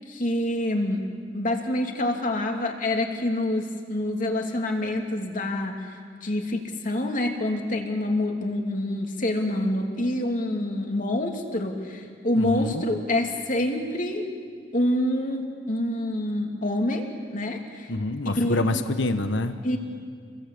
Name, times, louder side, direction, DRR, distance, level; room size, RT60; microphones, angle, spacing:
voice 1, 0.1-1.1 1.3-5.7 6.2-14.2 14.7-17.9 18.4-18.8 19.6-19.8, left 1 dB, 45° left, 2 dB, 3.0 m, -26 dB
voice 2, 12.4-12.8 17.9-19.6, left 2 dB, 70° left, 8 dB, 1.2 m, -26 dB
29.5 x 23.0 x 8.6 m, 2.1 s
head